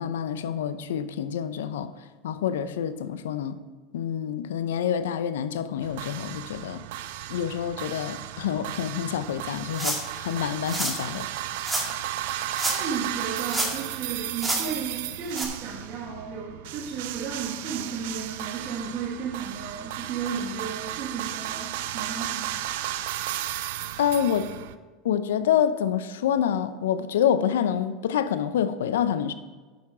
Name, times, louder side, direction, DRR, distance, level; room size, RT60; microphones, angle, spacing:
voice 1, 0.0-1.9 2.2-3.6 3.9-6.8 7.3-11.3 24.0-24.5 25.0-29.3, left 9 dB, 80° left, 0.6 m, -27 dB
sound 1, 5.8-24.7, right 13 dB, 70° right, 0.5 m, -34 dB
sound 2, 9.7-10.2 10.6-11.0 11.6-11.9 12.5-13.0 13.3-13.9 14.4-14.6 15.3-15.5, right 1 dB, 10° right, 2.1 m, -29 dB
voice 2, 12.7-22.5, right 5 dB, 55° right, 2.0 m, -34 dB
9.2 x 6.8 x 4.8 m
hypercardioid pair, 90°, 0 cm